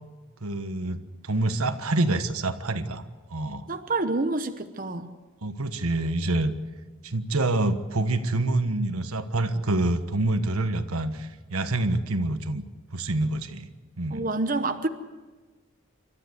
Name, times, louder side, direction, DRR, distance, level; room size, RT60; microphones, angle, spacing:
voice 1, 0.4-3.0 3.3-3.6 5.4-6.5 7.0-12.6 12.9-13.7 14.0-14.2, right 2 dB, 85° right, 9 dB, 1.4 m, -26 dB
voice 2, 3.7-5.2 14.1-14.9, right 2 dB, 40° right, 7 dB, 1.0 m, -28 dB
28.5 x 13.5 x 8.0 m, 1.4 s
head